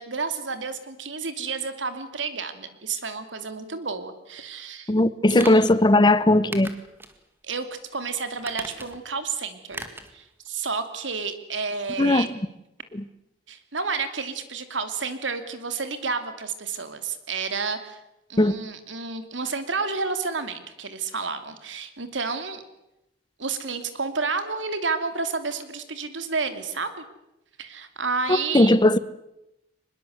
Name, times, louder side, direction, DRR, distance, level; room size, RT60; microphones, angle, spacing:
voice 1, 0.0-4.9 5.3-5.7 7.4-7.7 7.9-9.8 10.1-12.3 13.5-18.0 18.3-22.6 23.4-27.0 27.6-28.8, right 4 dB, 90° right, 2.8 m, -30 dB
voice 2, 4.9-6.7 12.0-12.3 12.9-13.0 18.4-18.6 28.3-29.0, left 1 dB, 25° left, 0.8 m, -18 dB
sound 1, 5.3-5.8 6.5-7.2 7.5-7.6 8.4-9.1 9.7-10.1 10.5-10.6, right 2 dB, 10° right, 2.0 m, -38 dB
24.0 x 21.0 x 8.0 m
head